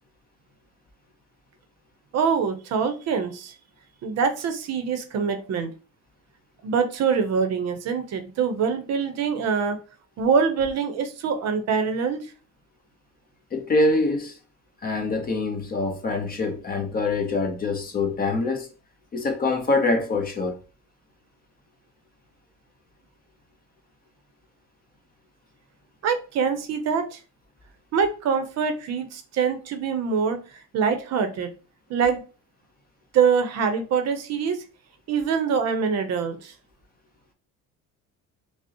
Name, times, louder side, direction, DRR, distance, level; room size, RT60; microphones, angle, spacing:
voice 1, 2.1-3.5 4.0-5.7 6.6-9.8 10.2-12.2 26.0-27.2 27.9-30.4 30.7-31.5 31.9-32.2 33.1-34.6 35.1-36.5, right 6 dB, 50° right, 0.6 m, -24 dB
voice 2, 13.5-14.4 14.8-18.7 19.1-20.6, left 3 dB, 25° left, 0.6 m, -24 dB
5.1 x 2.0 x 2.7 m
cardioid pair, 155°, 33 cm